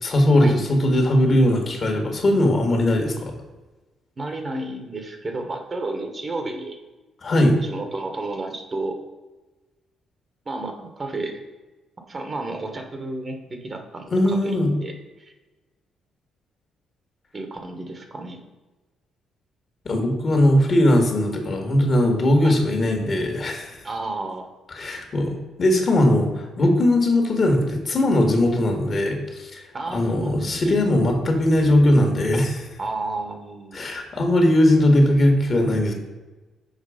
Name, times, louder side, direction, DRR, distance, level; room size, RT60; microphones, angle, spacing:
voice 1, 0.0-3.3 7.2-7.6 14.1-14.7 19.8-23.8 24.7-29.6 29.9-32.7 33.7-35.9, left 1 dB, 45° left, 3 dB, 1.7 m, -19 dB
voice 2, 4.2-6.8 7.6-9.0 10.4-11.4 12.1-14.9 15.2-15.3 17.3-18.4 22.4-22.6 23.8-24.5 29.7-30.8 32.8-33.8, right 2 dB, 35° right, 5 dB, 1.2 m, -32 dB
6.5 x 4.8 x 5.0 m, 1.2 s
cardioid pair, 90°, 0 cm